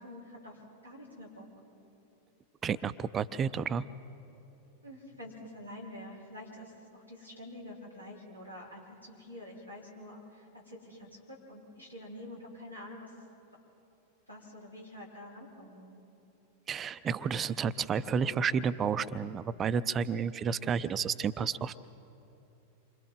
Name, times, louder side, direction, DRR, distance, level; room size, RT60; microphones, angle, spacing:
voice 1, 0.0-1.5 4.8-13.1 14.3-16.0, left 1 dB, 90° left, -5 dB, 4.5 m, -47 dB
voice 2, 2.6-3.9 16.7-21.9, right 6 dB, 25° right, 15 dB, 0.5 m, -31 dB
28.5 x 25.0 x 3.9 m, 3.0 s
figure-of-eight pair, 90°, 0 cm